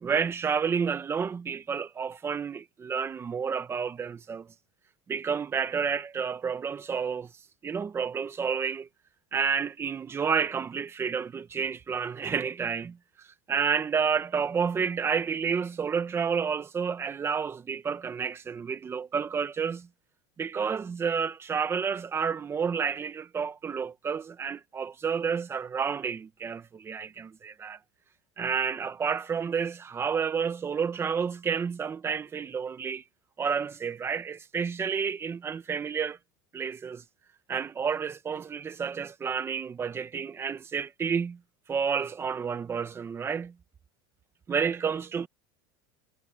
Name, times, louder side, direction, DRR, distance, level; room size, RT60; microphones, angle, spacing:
voice 1, 0.0-4.5 5.1-7.3 7.6-8.9 9.3-13.0 13.5-19.9 20.4-27.8 28.4-33.0 33.4-36.2 36.5-37.0 37.5-41.4 41.7-43.5 44.5-45.3, right 6 dB, 20° right, 1.5 m, -30 dB
supercardioid pair, 145°, 13 cm